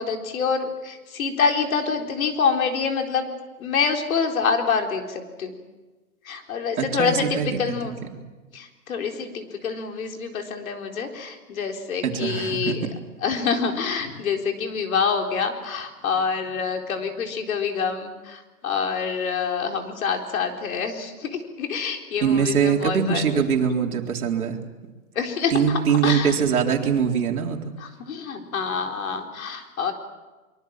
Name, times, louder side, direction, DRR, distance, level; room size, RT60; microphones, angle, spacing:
voice 1, 0.0-3.3 3.6-5.5 6.2-7.9 8.5-12.9 13.2-23.4 25.1-26.4 27.8-29.9, left 5 dB, 65° left, 4 dB, 4.2 m, -26 dB
voice 2, 6.8-7.6 12.0-12.8 22.2-24.6 25.5-27.7, right 7 dB, 75° right, 2 dB, 4.0 m, -22 dB
24.5 x 23.5 x 7.5 m, 1.2 s
hypercardioid pair, 165°, 44 cm